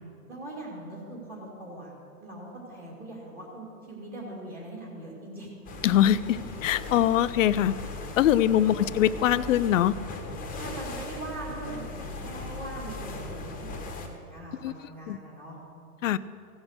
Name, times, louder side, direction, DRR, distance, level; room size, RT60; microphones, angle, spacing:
voice 1, 0.3-1.9 2.2-5.5 8.7-8.9 10.6-15.6, right 1 dB, 20° right, -4 dB, 2.5 m, -41 dB
sound 1, 5.6-14.1, left 2 dB, 20° left, 1.3 m, -38 dB
voice 2, 5.8-7.7 8.2-10.0 14.6-14.7 15.1-15.2 16.0-16.2, left 11 dB, 55° left, 17 dB, 0.5 m, -23 dB
15.5 x 6.3 x 6.6 m, 2.4 s
hypercardioid pair, 130°, 47 cm